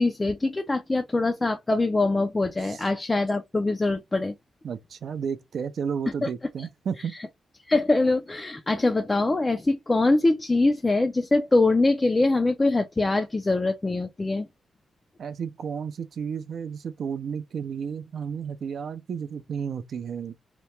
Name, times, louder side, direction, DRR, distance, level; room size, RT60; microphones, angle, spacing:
voice 1, 0.0-4.3 6.2-6.3 6.6-6.7 7.1-7.3 7.7-14.5, left 2 dB, 20° left, 0.3 m, -23 dB
voice 2, 4.6-7.2 15.2-20.3, right 7 dB, 60° right, 0.3 m, -32 dB
2.8 x 2.1 x 3.0 m
cardioid pair, 120°, 0 cm